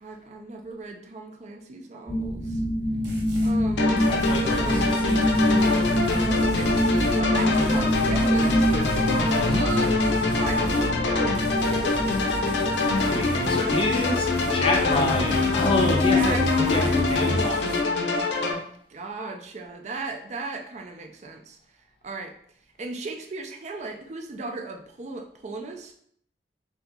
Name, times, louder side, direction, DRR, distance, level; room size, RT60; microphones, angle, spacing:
voice 1, 0.0-2.6 3.4-4.0 4.5-5.0 6.1-9.2 9.6-12.4 13.1-13.4 16.0-17.5 18.9-21.6 22.0-22.4 22.8-25.9, right 3 dB, 40° right, 3 dB, 0.4 m, -36 dB
sound 1, 2.1-17.4, left 1 dB, 5° right, 0.7 m, -25 dB
sound 2, 3.0-3.6 4.0-11.0 11.4-17.8, right 1 dB, 75° right, 0.7 m, -40 dB
sound 3, 3.8-18.5, left 3 dB, 80° left, 0.5 m, -25 dB
voice 2, 4.1-5.3 9.5-9.6 12.9-16.4 16.7-18.0, left 2 dB, 30° left, 1 dB, 0.5 m, -28 dB
2.8 x 2.8 x 3.5 m, 0.63 s
head